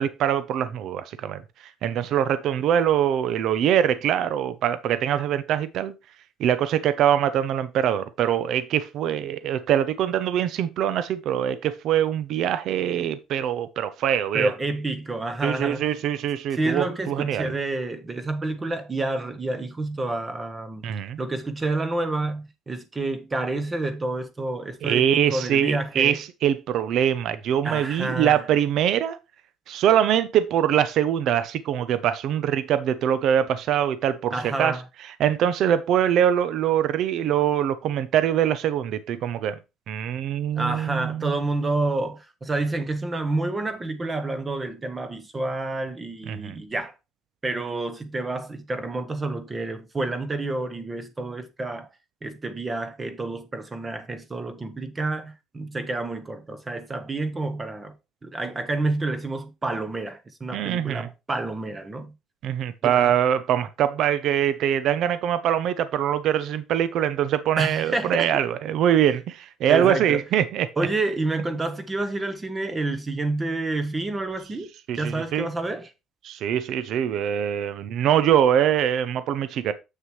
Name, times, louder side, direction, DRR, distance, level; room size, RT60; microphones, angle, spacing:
voice 1, 0.0-1.4 1.8-5.9 6.4-14.5 15.4-17.5 20.8-21.2 24.8-29.2 29.7-34.3 34.6-34.7 35.2-39.6 39.9-41.4 46.3-46.6 60.5-61.1 62.4-70.7 74.9-75.5 76.2-79.7, right 10 dB, 55° right, 0.6 m, -23 dB
voice 2, 14.3-15.9 16.5-20.8 21.2-26.2 27.6-28.4 34.3-34.8 40.6-46.9 47.4-51.9 52.2-58.0 58.2-62.1 62.8-63.1 67.6-68.3 69.7-70.2 70.8-74.7 74.9-75.9, right 2 dB, 15° right, 1.0 m, -29 dB
7.4 x 6.5 x 3.1 m
cardioid pair, 160°, 0 cm